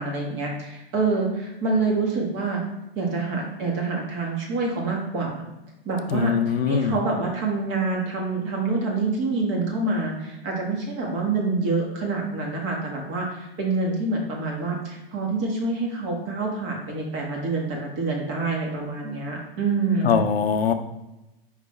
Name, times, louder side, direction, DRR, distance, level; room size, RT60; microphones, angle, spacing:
voice 1, 0.0-2.6 2.9-5.5 5.8-20.2, right 3 dB, 40° right, -1 dB, 1.6 m, -26 dB
voice 2, 6.1-7.0 20.0-20.7, left 7 dB, 75° left, 8 dB, 0.6 m, -22 dB
5.1 x 3.2 x 3.2 m, 0.96 s
hypercardioid pair, 100°, 30 cm